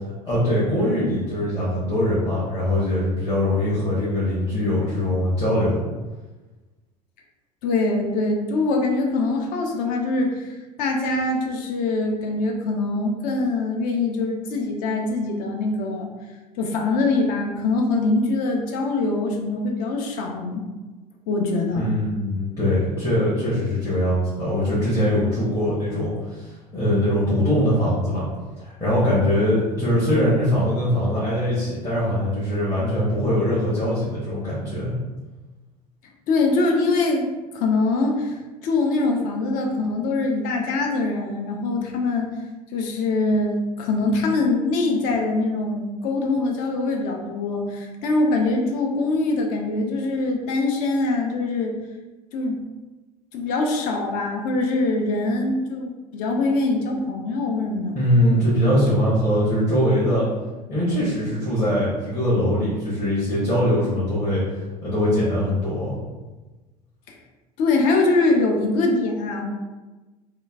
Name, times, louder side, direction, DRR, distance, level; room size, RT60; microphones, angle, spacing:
voice 1, 0.2-5.8 21.8-26.5 26.7-28.2 28.6-34.9 57.9-60.3 60.7-64.4 64.8-66.0, equal, 20° left, -10 dB, 1.0 m, -22 dB
voice 2, 7.6-16.1 16.6-20.7 21.3-22.0 36.3-42.3 42.7-51.8 52.3-52.6 53.3-58.0 67.1-67.2 67.6-69.4, left 3 dB, 45° left, 1 dB, 0.5 m, -23 dB
3.0 x 2.3 x 2.3 m, 1.2 s
figure-of-eight pair, 75°, 21 cm